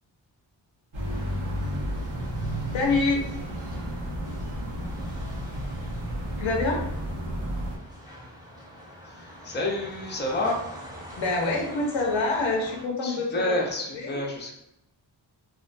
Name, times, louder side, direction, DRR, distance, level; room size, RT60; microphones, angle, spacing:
sound 1, 0.9-7.8, equal, 85° right, 0.9 m, -32 dB
sound 2, 1.0-12.8, equal, 10° right, 0.9 m, -45 dB
voice 1, 2.7-3.2 6.4-6.8 11.2-13.5 13.9-14.2, left 3 dB, 80° left, 0 dB, 0.7 m, -26 dB
voice 2, 9.0-10.6 13.0-14.5, left 1 dB, 25° left, -1 dB, 0.6 m, -29 dB
2.4 x 2.1 x 2.5 m, 0.84 s
cardioid pair, 65°, 46 cm